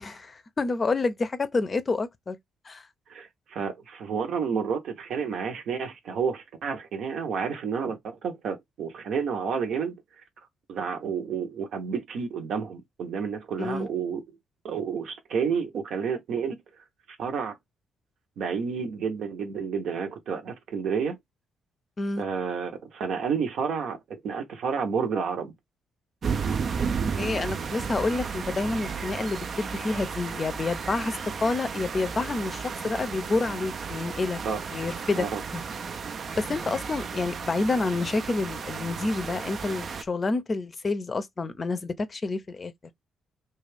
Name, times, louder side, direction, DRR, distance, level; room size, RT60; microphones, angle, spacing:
voice 1, 0.0-2.4 2.6-2.9 13.6-13.9 22.0-22.3 27.2-34.4 34.7-35.3 35.5-35.6 36.4-42.7, left 3 dB, 40° left, 0.5 m, -28 dB
voice 2, 3.1-10.2 10.7-14.2 14.6-16.6 17.1-17.6 18.4-21.2 22.2-25.5 34.4-34.6 35.2-35.4, right 6 dB, 70° right, 0.8 m, -30 dB
sound 1, 26.2-40.0, right 6 dB, 55° right, 0.4 m, -33 dB
2.4 x 2.3 x 3.3 m
supercardioid pair, 55°, 0 cm